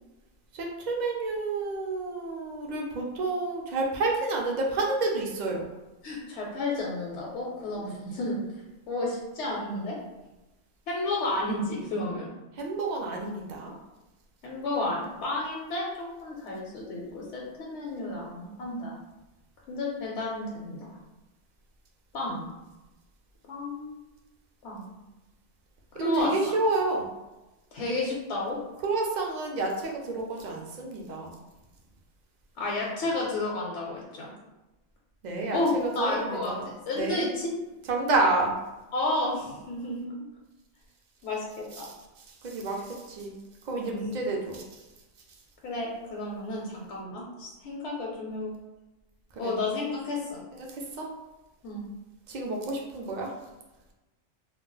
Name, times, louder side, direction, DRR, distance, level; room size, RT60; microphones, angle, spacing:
voice 1, 0.5-5.7 12.5-13.7 25.9-27.1 28.8-31.3 35.2-36.7 36.9-37.2 37.8-38.5 41.7-43.4 43.6-44.8 49.3-49.6 50.5-51.1 52.3-53.3, right 3 dB, 55° right, 0 dB, 0.5 m, -30 dB
voice 2, 6.0-8.4 8.9-10.0 10.9-12.3 14.4-18.9 19.7-20.9 22.1-22.5 23.5-23.9 24.6-24.9 26.0-26.3 27.7-28.6 32.6-34.3 35.5-37.5 38.9-40.3 41.2-41.9 43.8-44.0 45.6-48.5 49.4-50.4 51.6-51.8, left 2 dB, 75° left, -3 dB, 0.9 m, -31 dB
2.3 x 2.1 x 3.8 m, 1.1 s
omnidirectional pair, 1.2 m